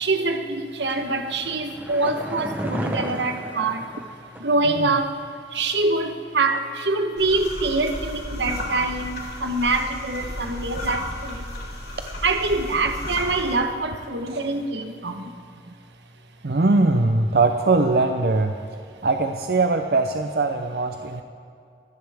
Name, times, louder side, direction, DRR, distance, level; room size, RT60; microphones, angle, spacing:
voice 1, 0.0-3.9 4.4-5.2 5.5-11.7 12.2-15.3, right 3 dB, 80° right, 6 dB, 1.1 m, -25 dB
sound 1, 0.9-4.6 4.9-5.0, right 1 dB, 10° right, 0.9 m, -33 dB
sound 2, 7.2-13.6, left 1 dB, 60° left, 3.6 m, -34 dB
voice 2, 16.4-18.5 19.0-21.2, right 3 dB, 60° right, 5 dB, 0.6 m, -21 dB
24.5 x 10.5 x 3.5 m, 2.4 s
head